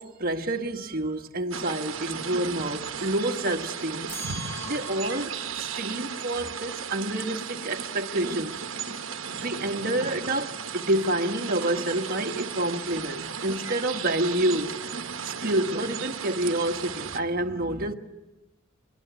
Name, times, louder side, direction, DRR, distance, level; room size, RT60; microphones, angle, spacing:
voice 1, 0.0-4.2 4.7-8.6 9.3-14.8 15.2-17.9, right 1 dB, 45° right, 1.3 m, -28 dB
sound 1, 1.5-17.2, right 6 dB, 65° right, 1.2 m, -35 dB
sound 2, 4.1-5.5, right 1 dB, 10° left, 1.9 m, -39 dB
22.5 x 21.0 x 8.2 m
head